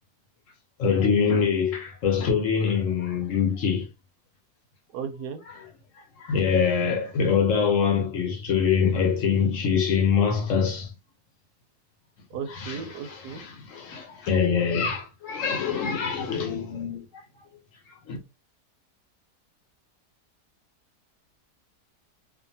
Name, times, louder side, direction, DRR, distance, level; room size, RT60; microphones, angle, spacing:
voice 1, 0.8-3.9 5.5-5.7 6.2-10.9 12.5-17.2 18.1-18.2, left 6 dB, 60° left, 1.0 m, -24 dB
voice 2, 4.9-5.4 12.3-13.4, right 7 dB, 80° right, 1.1 m, -35 dB
2.6 x 2.5 x 2.6 m
omnidirectional pair, 1.7 m